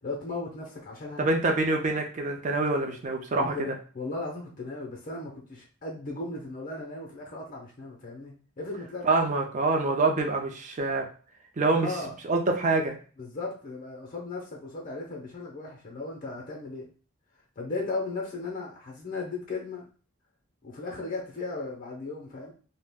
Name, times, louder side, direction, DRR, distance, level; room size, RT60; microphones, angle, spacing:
voice 1, 0.0-1.3 3.4-9.1 11.7-12.1 13.2-16.9 17.6-19.8 20.6-22.5, left 3 dB, 40° left, 0 dB, 0.6 m, -36 dB
voice 2, 1.2-3.7 9.0-11.1 11.6-11.9 12.3-13.0, right 3 dB, 35° right, 3 dB, 0.5 m, -26 dB
2.4 x 2.1 x 3.4 m, 0.39 s
head